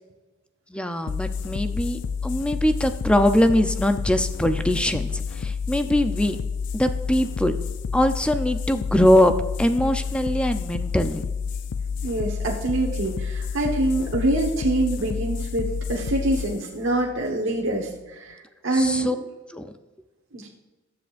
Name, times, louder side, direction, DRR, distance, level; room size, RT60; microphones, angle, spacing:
voice 1, 0.7-6.4 6.7-7.6 7.9-9.3 9.6-11.2 18.7-19.2 19.5-19.7, left 1 dB, 5° left, 8 dB, 0.5 m, -22 dB
sound 1, 1.1-18.1, left 5 dB, 65° left, 0.4 m, -30 dB
voice 2, 12.0-18.4 18.6-19.1 20.3-20.5, right 2 dB, 80° right, -2 dB, 1.3 m, -25 dB
20.5 x 7.7 x 2.5 m, 1.2 s
head